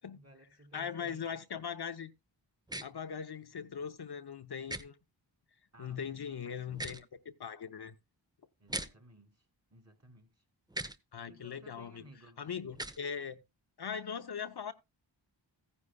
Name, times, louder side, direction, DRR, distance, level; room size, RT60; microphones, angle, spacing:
voice 1, 0.2-1.6 5.7-6.8 8.6-10.4 11.3-12.4, right 1 dB, 35° right, 2.7 m, -58 dB
voice 2, 0.7-2.1 2.8-5.0 5.8-8.0 11.1-12.0 12.4-13.4 13.8-14.7, left 7 dB, 60° left, 0.7 m, -40 dB
sound 1, 2.7-2.8 4.7-4.8 6.7-7.0 8.7-8.9 10.7-11.0 12.7-13.0, right 1 dB, 10° right, 0.6 m, -39 dB
15.0 x 9.8 x 2.2 m
wide cardioid pair, 70°, 44 cm